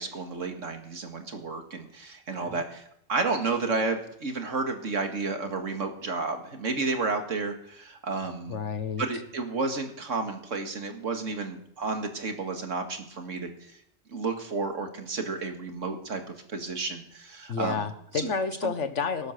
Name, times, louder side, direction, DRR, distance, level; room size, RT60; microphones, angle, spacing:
voice 1, 0.0-2.8 3.1-8.6 9.0-13.7 14.1-17.9 18.1-18.3 18.6-18.7, right 3 dB, 90° right, 5 dB, 2.2 m, -31 dB
voice 2, 8.5-9.0 17.5-19.3, left 5 dB, 70° left, 10 dB, 1.6 m, -30 dB
18.5 x 10.5 x 6.7 m, 0.72 s
omnidirectional pair, 1.3 m